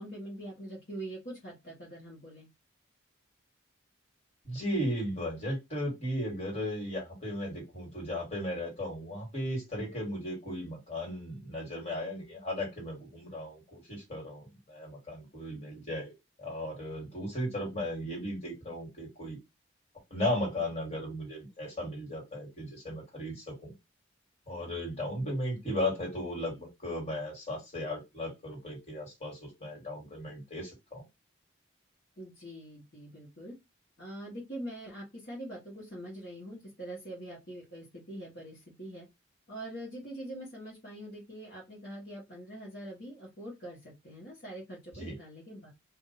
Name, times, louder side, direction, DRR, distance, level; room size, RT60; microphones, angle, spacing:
voice 1, 0.0-2.5 32.2-33.5 34.0-39.1 39.5-45.7, right 1 dB, 50° left, -6 dB, 1.3 m, -43 dB
voice 2, 4.4-16.1 16.4-19.4 20.1-23.7 24.5-31.0 45.0-45.2, left 1 dB, 30° left, -3 dB, 2.0 m, -36 dB
2.7 x 2.6 x 3.9 m, 0.21 s
head